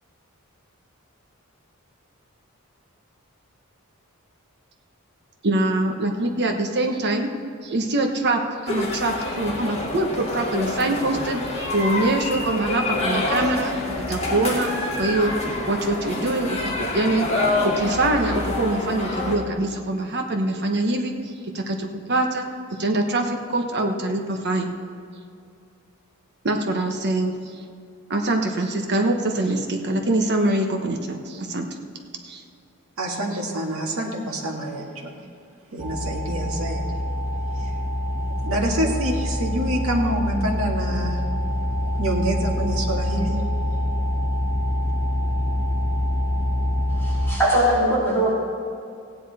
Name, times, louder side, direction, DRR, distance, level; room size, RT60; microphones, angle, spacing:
voice 1, 5.4-7.3 7.6-11.4 11.7-13.7 14.1-14.7 15.0-15.3 15.6-17.3 17.6-21.1 21.5-24.8 26.4-27.4 28.1-31.7 32.2-32.4, right 2 dB, 55° right, 4 dB, 1.2 m, -24 dB
sound 1, 8.7-19.4, left 2 dB, 30° left, 2.0 m, -27 dB
voice 2, 33.0-35.1 35.7-36.8 37.5-37.8 38.4-41.2 41.8-43.4, right 1 dB, 70° right, -1 dB, 1.9 m, -26 dB
sound 2, 35.8-47.3, left 1 dB, 30° right, 2.6 m, -25 dB
voice 3, 47.0-48.3, right 1 dB, 10° left, -8 dB, 3.5 m, -20 dB
16.0 x 9.8 x 4.2 m, 2.5 s
head